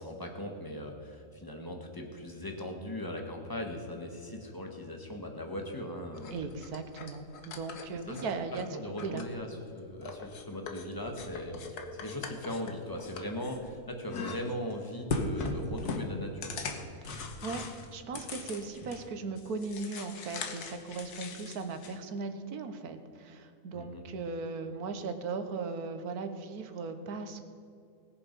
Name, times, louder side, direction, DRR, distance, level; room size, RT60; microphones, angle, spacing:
voice 1, 0.0-6.3 8.1-8.3 8.7-16.9 23.7-24.0, left 1 dB, 15° left, 2 dB, 1.5 m, -39 dB
sound 1, 6.1-8.6 9.0-9.7 10.0-13.8 14.1-14.7 15.1-19.1 19.4-22.0, left 3 dB, 85° left, 1.7 m, -39 dB
voice 2, 6.3-8.7 9.0-9.2 17.0-17.6 17.9-27.4, right 4 dB, 75° right, 8 dB, 1.5 m, -38 dB
20.0 x 7.2 x 5.3 m, 2.5 s
omnidirectional pair, 1.6 m